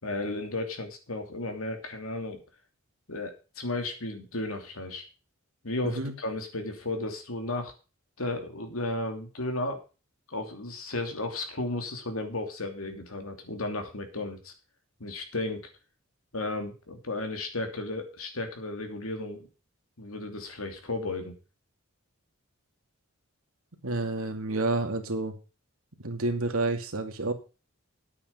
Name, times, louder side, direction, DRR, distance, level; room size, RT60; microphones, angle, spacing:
voice 1, 0.0-2.4 3.1-5.1 5.6-7.7 8.2-9.8 10.3-14.5 15.0-15.7 16.3-19.5 20.0-21.3, left 2 dB, 90° left, 5 dB, 2.9 m, -34 dB
voice 2, 23.8-25.4 26.0-27.3, right 2 dB, 85° right, 5 dB, 2.4 m, -29 dB
10.5 x 8.6 x 5.4 m, 0.32 s
head